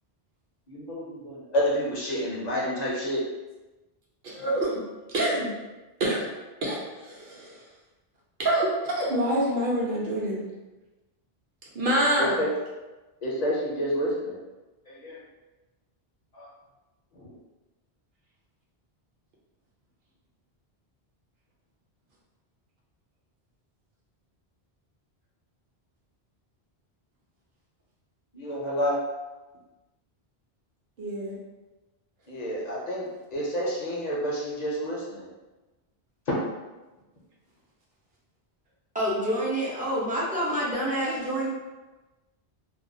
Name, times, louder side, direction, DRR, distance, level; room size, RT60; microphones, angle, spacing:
voice 1, 0.7-3.3 12.2-12.5 13.2-14.3 14.9-15.2 16.3-16.5 17.1-17.3 28.3-28.9 32.3-35.3 36.3-36.4, equal, 50° left, -5 dB, 0.6 m, -29 dB
voice 2, 4.2-4.8 5.1-5.5 6.0-6.3 6.6-7.6 8.4-10.5 11.7-12.3 31.0-31.3, right 1 dB, 55° right, -5 dB, 0.8 m, -26 dB
voice 3, 38.9-41.5, equal, 15° right, -7 dB, 0.3 m, -27 dB
2.4 x 2.2 x 2.6 m, 1.1 s
omnidirectional pair, 1.1 m